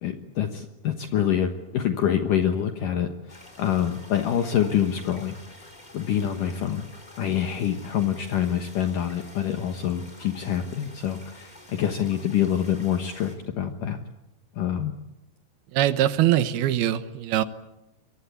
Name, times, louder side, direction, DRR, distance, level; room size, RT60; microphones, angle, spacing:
voice 1, 0.0-5.4 5.9-6.8 7.2-14.0 14.5-14.9, left 9 dB, 65° left, 6 dB, 2.5 m, -26 dB
sound 1, 3.3-13.4, left 1 dB, 10° left, 4.0 m, -48 dB
voice 2, 15.7-17.4, right 12 dB, 75° right, 12 dB, 2.9 m, -22 dB
27.0 x 23.5 x 8.4 m, 0.92 s
omnidirectional pair, 4.7 m